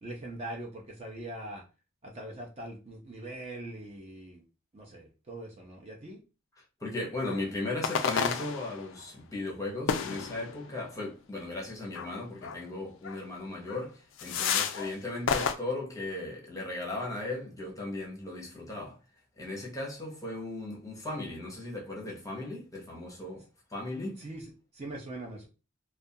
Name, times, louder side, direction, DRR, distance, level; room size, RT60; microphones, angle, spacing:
voice 1, 0.0-1.6 2.0-4.4 4.7-6.2 24.2-25.5, right 1 dB, 30° right, 0.5 m, -42 dB
voice 2, 6.8-19.0 19.4-23.4 23.7-24.2, left 2 dB, 15° left, 0.6 m, -37 dB
sound 1, 7.3-7.4 7.8-9.0 9.9-10.7 11.9-12.1 12.4-12.6 13.0-13.2 13.7-13.8 14.2-14.9 15.3-15.5, left 6 dB, 65° left, 0.3 m, -31 dB
2.3 x 2.2 x 2.7 m
head